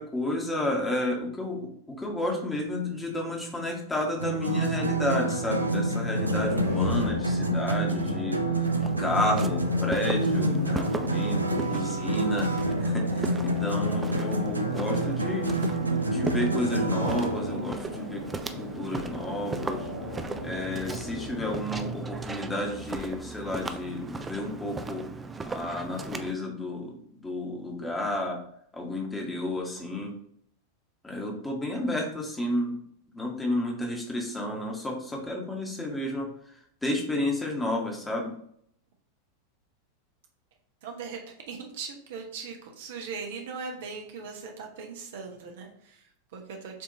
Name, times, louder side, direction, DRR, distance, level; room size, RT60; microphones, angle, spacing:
voice 1, 0.0-8.7 9.0-12.5 12.8-18.2 18.6-19.9 20.4-25.0 25.5-28.4 28.7-30.1 31.0-32.8 33.1-38.3, left 1 dB, 10° left, 0 dB, 1.2 m, -31 dB
sound 1, 4.2-17.3, right 1 dB, 80° right, 0.4 m, -28 dB
sound 2, 5.4-21.5, equal, 85° left, 1.6 m, -35 dB
Walk footsteps, 8.6-26.3, right 3 dB, 15° right, 0.4 m, -38 dB
voice 2, 40.8-46.8, right 5 dB, 55° right, 2 dB, 0.8 m, -39 dB
6.9 x 2.8 x 2.7 m, 0.67 s
figure-of-eight pair, 90°, 0 cm